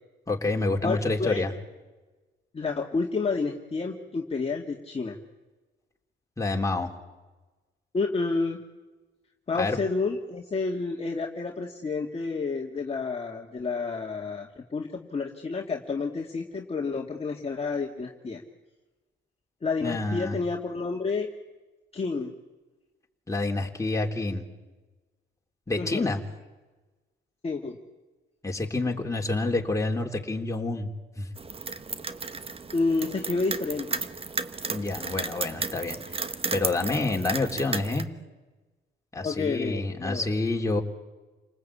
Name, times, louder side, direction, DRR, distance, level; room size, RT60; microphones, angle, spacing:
voice 1, 0.3-1.5 6.4-6.9 9.5-9.8 19.8-20.4 23.3-24.4 25.7-26.2 28.4-30.9 31.1-31.3 34.7-36.1 36.5-38.1 39.1-40.8, left 2 dB, 15° left, 1 dB, 3.4 m, -28 dB
voice 2, 0.8-1.4 2.5-5.2 7.9-8.6 9.5-18.4 19.6-21.3 21.9-22.3 25.8-26.1 27.4-27.8 32.7-34.0 39.2-40.3, left 4 dB, 30° left, 1 dB, 2.1 m, -30 dB
sound 1, 31.4-38.0, right 4 dB, 30° right, 1.2 m, -34 dB
29.5 x 19.5 x 8.6 m, 1.2 s
cardioid pair, 90°, 20 cm